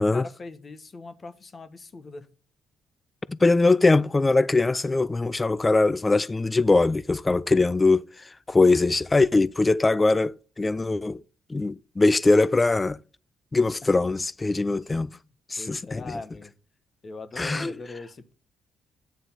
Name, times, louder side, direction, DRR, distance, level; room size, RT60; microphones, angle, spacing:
voice 1, 0.0-2.3 13.8-13.9 14.9-15.3 15.6-16.5 17.0-18.3, left 3 dB, 35° left, 1.2 m, -41 dB
voice 2, 3.3-8.1 8.5-11.2 11.5-13.0 13.5-15.1 15.5-16.0 17.4-17.7, left 3 dB, 20° left, 0.3 m, -21 dB
9.3 x 3.8 x 7.2 m
cardioid pair, 90°, 0 cm